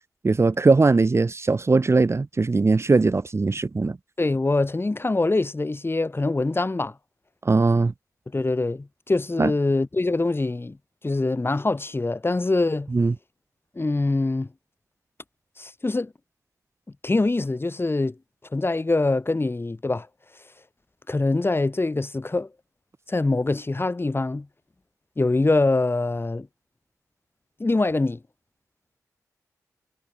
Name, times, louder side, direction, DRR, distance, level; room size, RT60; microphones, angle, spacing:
voice 1, 0.2-4.0 7.4-7.9 9.4-9.5 12.9-13.1, right 3 dB, 40° right, 1.4 m, -20 dB
voice 2, 4.2-7.0 8.3-10.8 11.0-12.9 13.8-14.5 15.6-16.1 17.0-18.2 18.5-20.1 21.1-22.5 23.1-24.5 25.2-26.5 27.6-28.2, left 2 dB, 35° left, 7.4 m, -24 dB
supercardioid pair, 40°, 7 cm